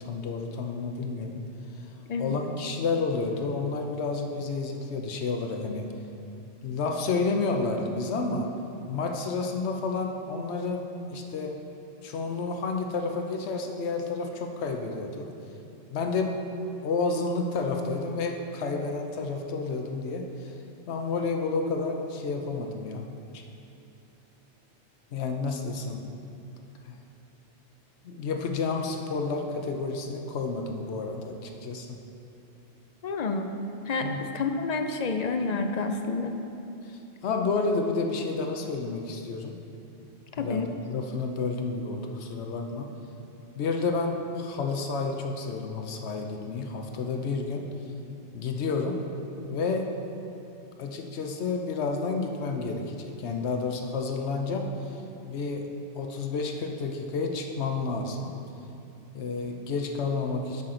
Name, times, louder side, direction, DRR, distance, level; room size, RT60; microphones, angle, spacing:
voice 1, 0.0-1.4 2.2-5.9 6.6-8.5 8.9-11.5 12.0-15.3 15.9-16.3 16.8-20.5 20.9-23.1 23.3-23.4 25.1-26.0 26.8-26.9 28.0-31.9 34.0-34.2 36.8-39.5 40.4-42.9 43.5-47.6 48.3-49.0 49.4-49.9 50.8-55.0 55.3-55.7 55.9-58.3 59.1-60.6, left 4 dB, 75° left, 3 dB, 1.0 m, -30 dB
voice 2, 33.0-33.6 33.9-36.3 40.4-40.7, left 4 dB, 55° left, 6 dB, 0.5 m, -29 dB
11.5 x 5.8 x 3.8 m, 2.8 s
omnidirectional pair, 1.1 m